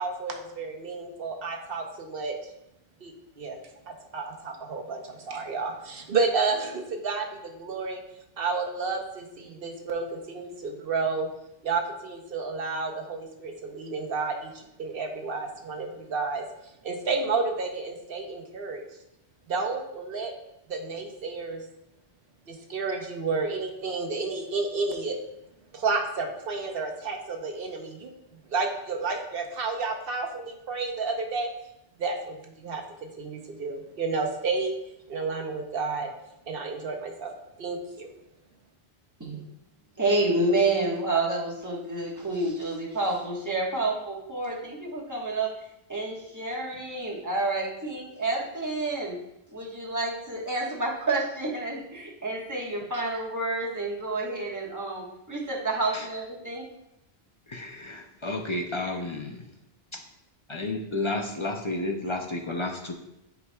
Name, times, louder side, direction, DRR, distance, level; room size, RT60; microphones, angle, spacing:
voice 1, 0.0-2.3 3.0-3.6 3.9-8.0 8.4-11.3 11.6-18.9 19.5-20.4 20.7-21.6 22.5-25.2 25.7-28.1 28.5-31.5 32.0-34.7 35.1-36.1 36.5-37.3 37.6-38.1, right 4 dB, 65° right, 3 dB, 1.0 m, -31 dB
voice 2, 40.0-45.5 45.9-49.2 49.5-56.7, right 2 dB, 15° right, -3 dB, 1.2 m, -29 dB
voice 3, 57.5-59.4 60.5-62.9, left 2 dB, 45° left, 3 dB, 0.4 m, -31 dB
9.7 x 4.6 x 2.2 m, 0.84 s
omnidirectional pair, 1.1 m